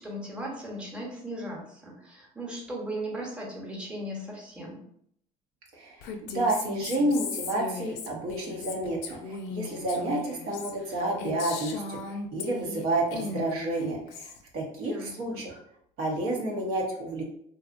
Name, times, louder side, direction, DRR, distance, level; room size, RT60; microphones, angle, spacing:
voice 1, 0.0-4.8 14.8-15.4, right 1 dB, 5° right, -2 dB, 0.9 m, -37 dB
voice 2, 5.7-15.6 16.0-17.2, right 1 dB, 70° right, -2 dB, 0.8 m, -30 dB
Female speech woman speaking, 6.0-12.8 13.1-14.4, left 4 dB, 75° left, 0.5 m, -37 dB
2.7 x 2.4 x 2.5 m, 0.68 s
supercardioid pair, 85°, 16 cm